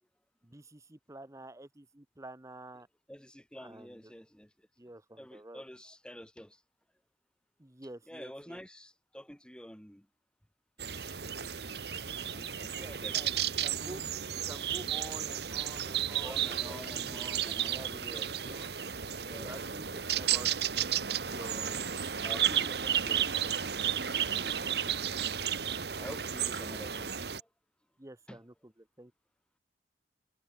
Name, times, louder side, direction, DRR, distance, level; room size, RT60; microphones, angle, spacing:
voice 1, 0.4-2.9 3.6-4.1 4.8-5.6 7.6-8.6 12.8-14.0 14.3-18.1 18.3-18.8 19.4-20.5 21.2-21.9 22.2-22.8 28.0-29.1, right 1 dB, 20° right, 0.9 m, -49 dB
voice 2, 3.1-4.5 5.2-6.6 8.1-10.1 10.8-11.3 12.3-13.3 16.2-19.9 22.2-23.6 26.0-27.5 28.3-28.4, equal, 5° left, 3.0 m, -49 dB
sound 1, 10.8-27.4, right 9 dB, 70° right, 1.6 m, -33 dB
head